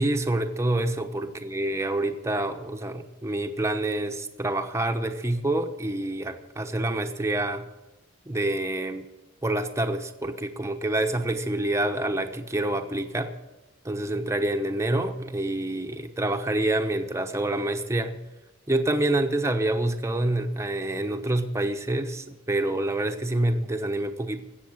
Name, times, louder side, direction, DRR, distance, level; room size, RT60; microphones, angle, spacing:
voice 1, 0.0-7.7 8.3-9.1 9.4-13.3 13.8-18.2 18.7-24.4, right 1 dB, 15° right, 6 dB, 0.9 m, -27 dB
16.5 x 7.1 x 8.8 m, 1.1 s
head